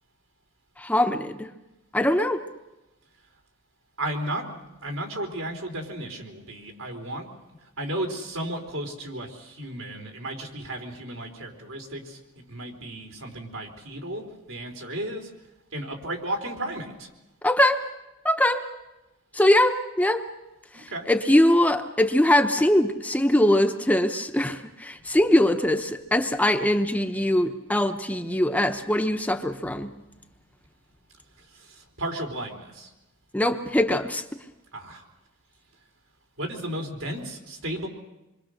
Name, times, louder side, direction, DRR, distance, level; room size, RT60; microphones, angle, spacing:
voice 1, 0.8-1.5 1.9-2.4 17.4-17.8 18.2-18.6 19.3-20.3 20.8-29.9 33.3-34.2, left 1 dB, 5° left, 6 dB, 0.8 m, -22 dB
voice 2, 4.0-7.3 7.8-15.3 15.7-17.1 20.7-21.1 31.5-32.9 34.7-35.0 36.4-37.9, right 1 dB, 80° right, 3 dB, 4.0 m, -34 dB
27.0 x 23.5 x 6.5 m, 1.0 s
head